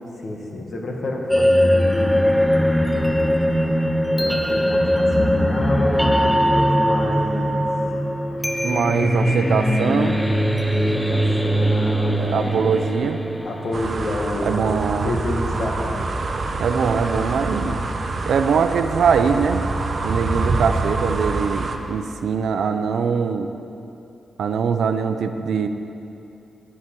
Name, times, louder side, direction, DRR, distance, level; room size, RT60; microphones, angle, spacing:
voice 1, 0.2-2.4 4.1-7.7 10.9-12.6 13.4-14.6 15.0-16.1, left 2 dB, 55° left, 1 dB, 1.6 m, -29 dB
sound 1, 1.3-14.3, equal, 5° left, 0.7 m, -20 dB
voice 2, 8.6-10.2 12.2-13.2 14.5-15.1 16.6-17.8 18.2-19.6 20.0-23.5 24.4-25.7, right 6 dB, 80° right, 8 dB, 0.6 m, -22 dB
sound 2, 13.7-21.8, right 3 dB, 40° right, 0.9 m, -26 dB
11.0 x 10.0 x 6.0 m, 2.8 s
wide cardioid pair, 115°, 0 cm